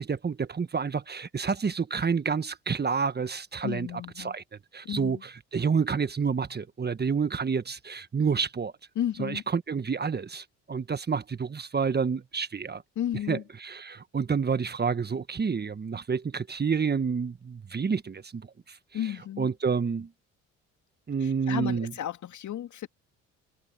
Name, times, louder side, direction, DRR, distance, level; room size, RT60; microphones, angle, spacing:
voice 1, 0.0-4.4 4.7-8.7 9.2-12.8 13.3-18.8 19.0-20.1 21.1-21.9, right 5 dB, 30° right, 1.4 m, -29 dB
voice 2, 3.6-4.3 4.8-5.2 9.0-9.4 13.0-13.4 18.9-19.5 21.5-22.9, left 11 dB, 55° left, 2.4 m, -33 dB
hypercardioid pair, 65°, 36 cm